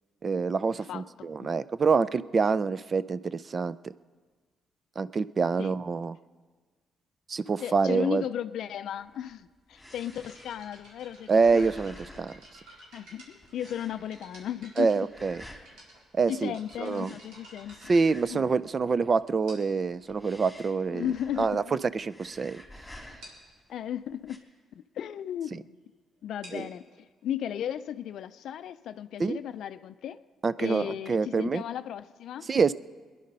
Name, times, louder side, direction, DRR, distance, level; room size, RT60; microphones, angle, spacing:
voice 1, 0.2-3.9 5.0-6.2 7.3-8.2 11.3-12.3 14.8-15.4 16.1-16.5 16.8-17.1 17.9-21.1 21.4-22.6 25.5-25.6 26.5-26.6 29.2-29.4 30.4-31.6 32.5-32.7, right 4 dB, 40° right, 17 dB, 0.4 m, -26 dB
voice 2, 0.9-1.5 5.6-5.8 7.6-11.7 12.9-14.9 16.3-17.8 18.3-18.5 20.9-21.8 23.7-24.4 24.8-25.8 26.2-30.2 30.6-32.5, left 10 dB, 75° left, 11 dB, 0.4 m, -35 dB
sound 1, 9.0-13.1 13.4-14.7 15.0-15.7 16.7-18.5 18.8-19.4 19.9-21.7 22.0-23.5 24.1-24.4, left 1 dB, 5° left, 3.5 m, -50 dB
sound 2, 10.0-18.9 19.5-19.9 20.7-20.8 21.4-21.5 21.8-22.0 22.3-22.4 22.7-22.8 23.2-23.5 26.2-29.7, right 1 dB, 90° right, 4.4 m, -53 dB
22.5 x 10.5 x 5.4 m, 1.5 s
cardioid pair, 90°, 0 cm